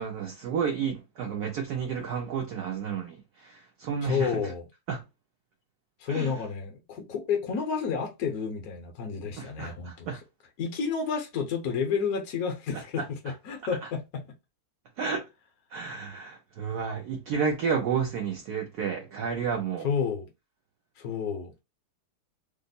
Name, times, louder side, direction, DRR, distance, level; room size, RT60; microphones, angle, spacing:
voice 1, 0.0-4.5 4.9-5.0 6.1-6.3 9.4-10.2 12.7-13.1 13.8-13.9 15.0-15.2 15.7-19.9, right 6 dB, 75° right, 0.9 m, -31 dB
voice 2, 4.0-4.6 6.0-10.1 10.6-14.2 19.8-20.3 21.0-21.5, left 6 dB, 55° left, 1.1 m, -30 dB
3.4 x 2.0 x 3.9 m
omnidirectional pair, 2.3 m